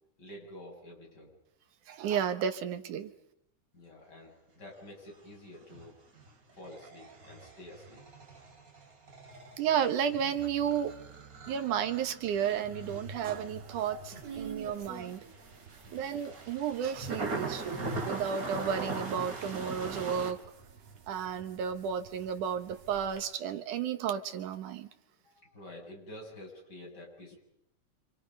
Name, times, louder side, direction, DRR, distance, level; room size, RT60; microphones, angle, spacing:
voice 1, 0.2-1.3 3.7-6.0 6.6-8.0 15.8-16.1 25.2-27.4, left 1 dB, 30° left, 8.1 m, -49 dB
voice 2, 1.9-3.1 9.6-11.0 11.5-15.2 15.9-20.4 21.1-24.9, right 8 dB, 85° right, 2.9 m, -32 dB
sound 1, 5.5-20.3, right 3 dB, 30° right, 3.1 m, -41 dB
sound 2, 12.2-23.2, right 6 dB, 60° right, 3.3 m, -50 dB
29.5 x 27.0 x 5.4 m
omnidirectional pair, 3.5 m